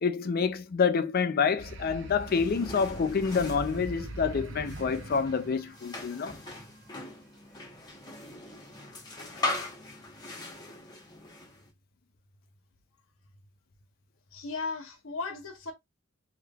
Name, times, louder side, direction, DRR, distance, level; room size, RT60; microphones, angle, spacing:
voice 1, 0.0-6.3, left 5 dB, 45° left, 0.4 m, -27 dB
sound 1, 1.6-6.5, right 2 dB, 55° right, 0.6 m, -42 dB
sound 2, 2.3-11.7, left 2 dB, 20° left, 1.0 m, -40 dB
voice 2, 14.3-15.7, left 3 dB, 65° left, 0.8 m, -36 dB
3.3 x 2.9 x 2.3 m
head